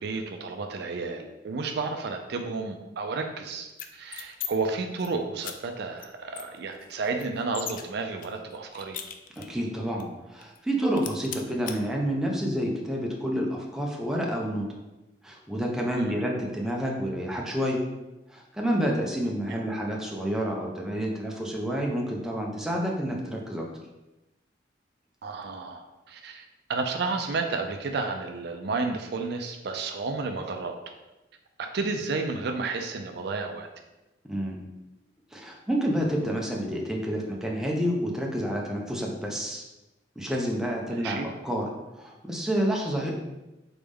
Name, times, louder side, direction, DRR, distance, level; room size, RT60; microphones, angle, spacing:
voice 1, 0.0-9.0 16.0-16.2 25.2-30.9 31.6-33.7 40.9-41.3, right 4 dB, 65° right, 4 dB, 0.4 m, -32 dB
sound 1, 3.7-4.5 4.8-5.1 5.4-5.5 6.0-6.1 6.3-7.8 8.2-9.6 10.0-10.1 10.4-10.7 11.0-11.8, left 9 dB, 50° left, 0.4 m, -38 dB
voice 2, 9.4-14.7 15.2-17.8 18.3-23.7 34.3-34.6 35.3-39.6 40.2-41.7 41.9-43.2, equal, 5° right, -2 dB, 0.6 m, -29 dB
3.9 x 3.4 x 3.5 m, 1.0 s
head